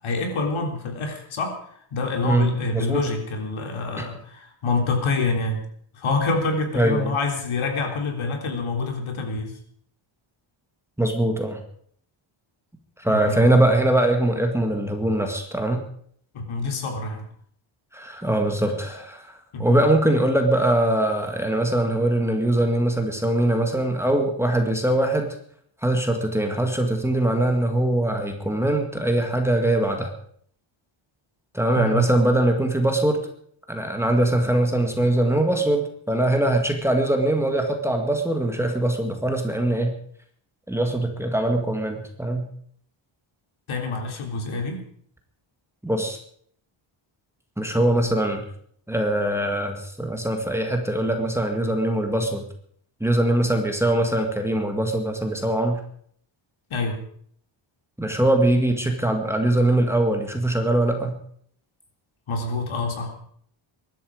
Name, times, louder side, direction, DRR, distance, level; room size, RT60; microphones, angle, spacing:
voice 1, 0.0-1.6 1.9-5.6 5.9-9.5 13.1-13.5 16.3-17.3 19.5-19.8 31.7-32.0 43.7-44.8 56.7-57.0 62.3-63.1, left 3 dB, 70° left, 3 dB, 3.8 m, -26 dB
voice 2, 2.7-3.0 4.0-4.1 6.7-7.2 11.0-11.6 13.0-15.8 17.9-19.3 19.6-25.4 25.8-30.1 31.5-33.2 33.7-39.9 40.7-42.5 45.8-46.2 47.6-48.5 48.9-52.4 53.0-55.8 58.0-61.2, right 1 dB, 5° right, 4 dB, 2.0 m, -22 dB
22.0 x 12.0 x 5.0 m, 0.62 s
wide cardioid pair, 160°, 50 cm